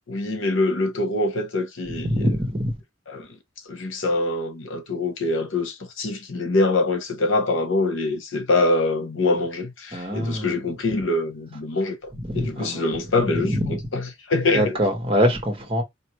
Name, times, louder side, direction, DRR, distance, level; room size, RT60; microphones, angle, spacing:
voice 1, 0.1-2.3 3.1-3.3 3.7-14.8, left 2 dB, 85° left, 1.0 m, -24 dB
voice 2, 2.0-2.7 9.9-10.5 12.3-12.8 13.4-13.8 14.5-15.8, equal, 30° right, 1.4 m, -23 dB
4.6 x 2.9 x 3.1 m
head